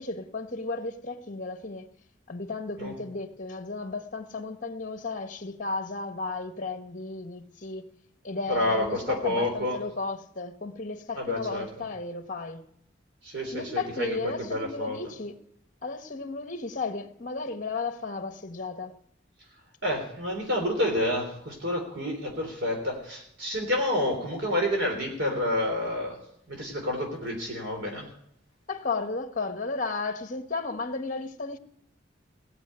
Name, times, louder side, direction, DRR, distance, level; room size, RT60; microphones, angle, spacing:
voice 1, 0.0-1.9 2.3-7.9 8.2-12.6 13.5-15.4 15.8-18.9 28.7-31.6, left 3 dB, 40° left, 1.3 m, -34 dB
voice 2, 8.5-9.8 11.2-11.7 13.2-15.0 19.8-26.2 26.5-28.1, left 1 dB, 65° right, 3.6 m, -29 dB
18.0 x 7.6 x 9.7 m
head